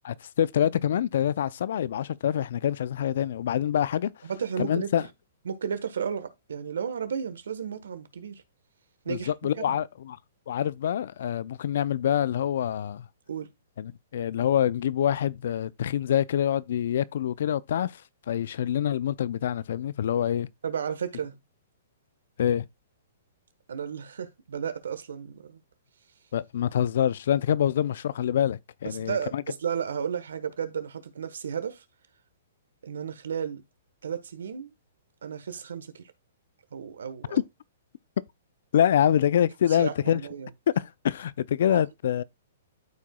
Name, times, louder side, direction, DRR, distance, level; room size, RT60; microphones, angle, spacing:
voice 1, 0.0-4.1 4.6-5.1 9.1-10.2 10.5-13.1 13.8-18.0 18.3-20.5 22.4-22.7 26.3-29.4 37.3-37.4 38.7-40.2 40.8-42.2, left 10 dB, 65° left, 0.4 m, -26 dB
voice 2, 4.2-5.1 5.4-8.4 9.0-9.8 13.3-13.5 20.6-21.4 23.7-25.6 28.8-31.8 32.8-33.6 34.0-34.7 35.2-36.1 36.7-37.4 39.8-40.5 41.7-41.8, right 7 dB, 75° right, 1.2 m, -33 dB
12.5 x 4.7 x 2.3 m
hypercardioid pair, 130°, 0 cm